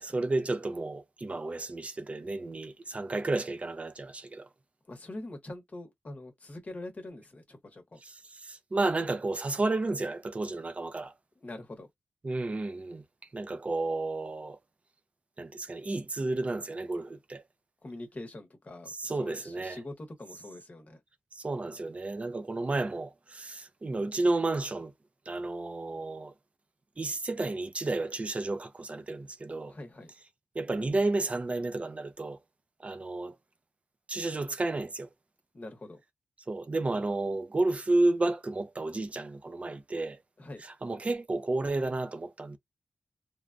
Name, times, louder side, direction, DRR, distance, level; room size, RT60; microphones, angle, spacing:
voice 1, 0.0-4.4 8.7-11.1 12.2-13.0 13.3-14.6 15.4-17.4 19.0-19.8 21.4-24.9 25.3-26.3 27.0-29.7 30.6-32.4 32.8-33.3 34.1-35.1 36.5-40.2 40.8-42.6, right 2 dB, 30° right, 0.5 m, -31 dB
voice 2, 4.9-8.0 11.4-11.9 17.8-21.0 29.7-30.1 35.5-36.0 40.4-40.6, left 2 dB, 35° left, 1.0 m, -44 dB
3.2 x 2.2 x 2.5 m
wide cardioid pair, 130°, 5 cm